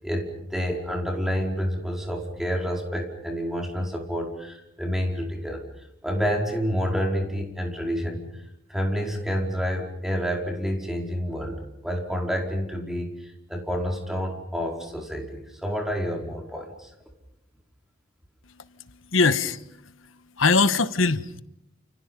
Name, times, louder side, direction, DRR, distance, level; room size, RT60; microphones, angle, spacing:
voice 1, 0.0-8.4 8.7-16.9, equal, ahead, 1 dB, 4.8 m, -29 dB
voice 2, 19.1-19.6 20.4-21.4, left 4 dB, 75° left, 13 dB, 1.4 m, -21 dB
29.5 x 29.5 x 5.5 m, 0.84 s
head